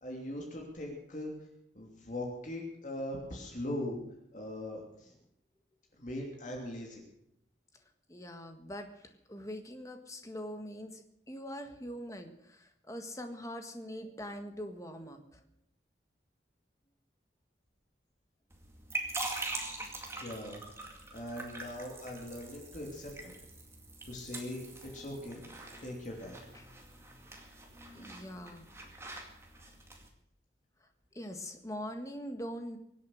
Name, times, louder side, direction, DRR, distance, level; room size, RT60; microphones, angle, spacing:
voice 1, 0.0-1.3 1.7-4.0 4.3-5.1 6.0-7.0 20.2-20.6 21.1-23.3 24.0-24.6 24.9-25.4 25.8-26.4, left 1 dB, 45° left, 0 dB, 3.0 m, -40 dB
voice 2, 8.1-15.5 26.5-26.7 27.9-28.6 31.1-32.8, equal, 20° left, 6 dB, 1.6 m, -43 dB
sound 1, 18.5-30.1, right 2 dB, 15° right, 2.2 m, -43 dB
23.5 x 8.4 x 6.5 m, 0.75 s
head